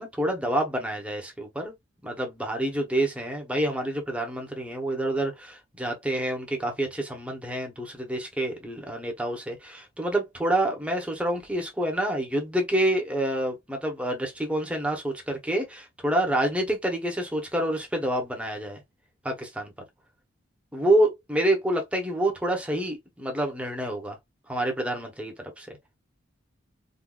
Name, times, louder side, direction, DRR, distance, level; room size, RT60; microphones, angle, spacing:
voice 1, 0.0-1.7 2.0-18.8 19.2-19.7 20.7-24.2 24.5-25.7, right 1 dB, 5° right, 0.9 m, -27 dB
3.8 x 2.6 x 2.3 m
head